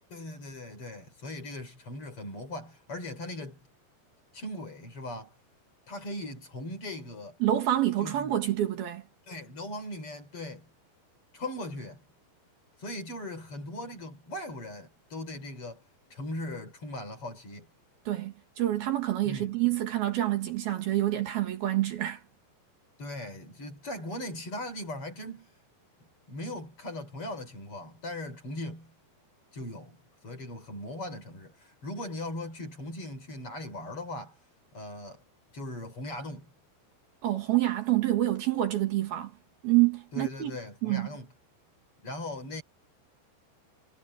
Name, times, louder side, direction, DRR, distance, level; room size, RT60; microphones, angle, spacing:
voice 1, 0.1-3.6 4.3-5.3 5.9-7.4 8.0-8.3 9.3-10.7 11.3-12.0 12.8-15.8 16.1-17.7 19.2-19.6 23.0-25.5 26.3-28.9 29.5-34.4 34.7-35.2 35.5-36.5 40.1-41.3 42.0-42.6, left 1 dB, 30° left, 4.7 m, -39 dB
voice 2, 7.4-9.0 18.1-22.2 37.2-39.3 39.6-40.6 40.8-41.1, right 14 dB, 65° right, 3.7 m, -27 dB
omnidirectional pair, 5.0 m